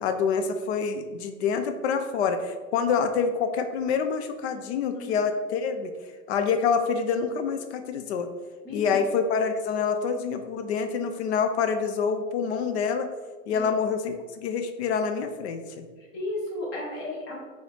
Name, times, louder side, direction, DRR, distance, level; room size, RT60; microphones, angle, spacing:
voice 1, 0.0-5.9 6.3-8.3 8.7-13.1 13.5-15.9, left 6 dB, 55° left, 8 dB, 0.5 m, -27 dB
voice 2, 4.5-5.2 8.6-9.0 13.5-13.8 16.0-17.4, left 1 dB, 30° left, -3 dB, 1.2 m, -35 dB
4.6 x 2.7 x 3.3 m, 1.4 s
hypercardioid pair, 135°, 41 cm